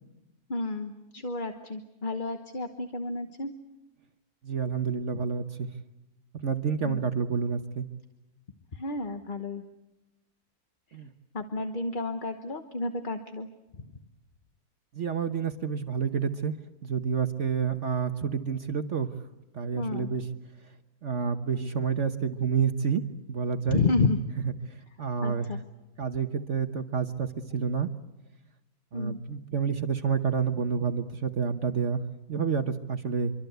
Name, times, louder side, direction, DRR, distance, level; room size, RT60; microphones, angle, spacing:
voice 1, 0.5-3.5 6.8-7.0 8.7-9.6 11.3-13.5 19.7-20.1 23.7-24.2 25.2-25.6 28.9-29.2, left 3 dB, 35° left, 7 dB, 1.2 m, -30 dB
voice 2, 4.4-5.7 6.4-7.9 10.9-11.1 14.9-16.5 16.8-19.1 19.5-20.2 21.0-23.8 25.0-25.5 26.0-27.9 28.9-32.0 32.3-33.3, right 6 dB, 50° right, 8 dB, 1.3 m, -29 dB
26.0 x 24.0 x 8.0 m, 0.97 s
omnidirectional pair, 1.7 m